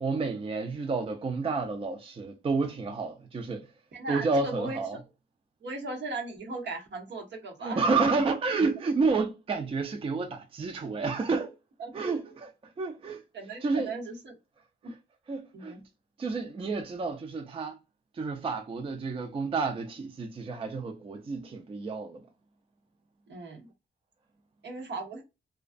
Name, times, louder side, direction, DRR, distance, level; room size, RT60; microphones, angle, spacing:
voice 1, 0.0-3.7 4.1-5.0 7.6-11.5 11.9-12.5 12.8-13.2 13.6-13.9 15.3-15.7 16.2-17.8 18.1-22.2, right 4 dB, 30° right, 0.4 m, -30 dB
voice 2, 3.9-4.8 5.6-8.2 11.8-12.0 13.3-14.3 15.5-15.8 23.3-23.7 24.6-25.2, right 3 dB, 70° right, 1.0 m, -37 dB
2.4 x 2.2 x 2.4 m
cardioid pair, 85°, 19 cm